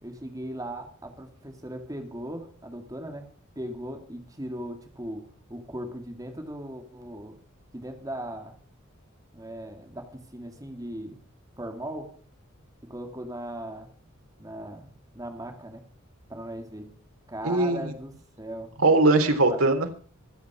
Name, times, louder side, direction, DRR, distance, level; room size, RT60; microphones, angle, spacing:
voice 1, 0.0-3.2 3.6-7.4 7.7-8.6 9.3-11.2 11.6-12.2 12.8-13.9 14.4-15.8 16.3-17.0 17.3-18.7 19.5-19.6, right 1 dB, 15° right, 4 dB, 2.3 m, -38 dB
voice 2, 17.4-17.8 18.8-19.9, right 2 dB, 85° right, 5 dB, 3.5 m, -20 dB
26.0 x 9.5 x 4.8 m, 0.41 s
head